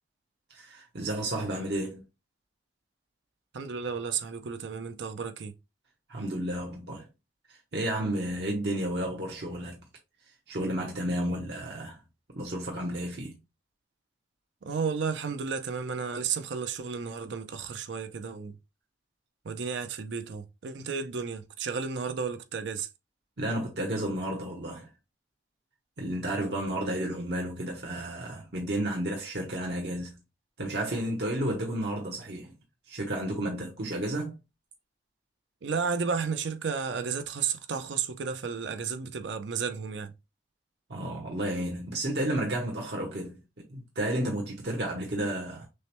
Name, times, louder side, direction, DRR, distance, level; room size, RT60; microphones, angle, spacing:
voice 1, 0.5-2.0 6.1-7.1 7.7-9.8 10.5-12.0 12.3-13.4 23.4-24.9 26.0-30.1 30.6-32.5 32.9-34.4 40.9-45.7, right 1 dB, 60° right, 0.9 m, -32 dB
voice 2, 3.5-5.5 14.6-18.6 19.5-22.9 35.6-40.1, right 6 dB, 80° right, 0.5 m, -32 dB
6.3 x 2.2 x 2.9 m
head